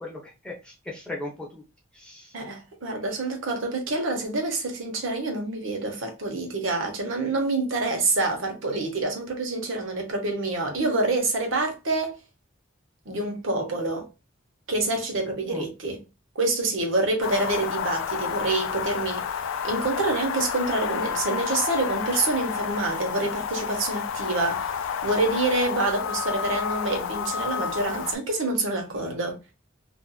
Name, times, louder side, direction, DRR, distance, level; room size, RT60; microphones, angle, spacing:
voice 1, 0.0-1.6 1.9-2.3 15.5-15.7, left 2 dB, 5° left, 0.8 m, -37 dB
voice 2, 2.3-12.2 13.1-14.1 14.7-16.0 16.3-29.4, right 2 dB, 75° right, 0.8 m, -27 dB
sound 1, 17.2-28.2, left 7 dB, 80° left, 0.3 m, -30 dB
2.8 x 2.4 x 2.2 m
head